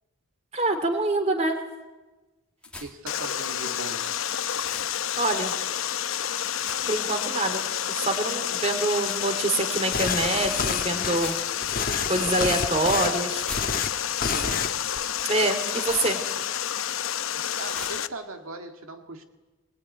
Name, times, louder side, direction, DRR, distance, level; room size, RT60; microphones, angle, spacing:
voice 1, 0.5-1.6 5.2-5.5 6.9-11.3 12.1-13.4 15.2-16.2, right 2 dB, 30° right, 6 dB, 2.8 m, -26 dB
sound 1, 2.6-3.1 4.5-5.0 6.6-7.1 9.0-9.3 11.1-11.8 13.3-14.2 15.7-16.2 17.7-18.1, left 3 dB, 5° left, 2.3 m, -41 dB
voice 2, 2.7-4.0 14.3-14.7 15.7-15.8 17.6-19.2, right 2 dB, 80° right, 5 dB, 1.9 m, -39 dB
Water, 3.1-18.1, left 10 dB, 70° left, 0.8 m, -29 dB
sound 2, 9.9-11.2 11.6-13.1 13.4-13.9 14.2-14.7 15.0-15.2, left 5 dB, 40° left, 1.3 m, -29 dB
22.5 x 21.0 x 9.4 m, 1.1 s
head